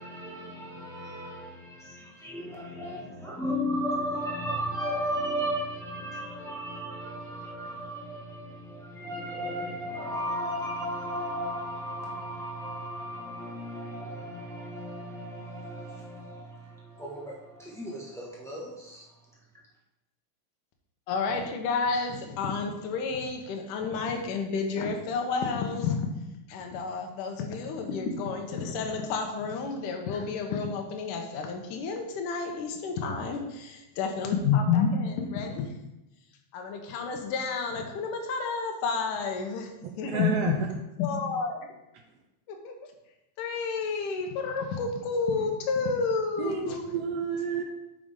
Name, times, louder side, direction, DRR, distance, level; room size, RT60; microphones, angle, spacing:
voice 1, 0.0-19.1, equal, 5° left, -6 dB, 0.6 m, -35 dB
voice 2, 21.1-26.1 26.5-35.7 36.5-39.7 40.0-40.5 41.0-41.7 42.5-42.7 43.4-46.8, left 5 dB, 75° left, 3 dB, 2.5 m, -30 dB
voice 3, 39.8-40.7 46.4-47.6, right 6 dB, 85° right, 3 dB, 1.4 m, -31 dB
9.1 x 6.6 x 3.8 m, 0.93 s
omnidirectional pair, 3.8 m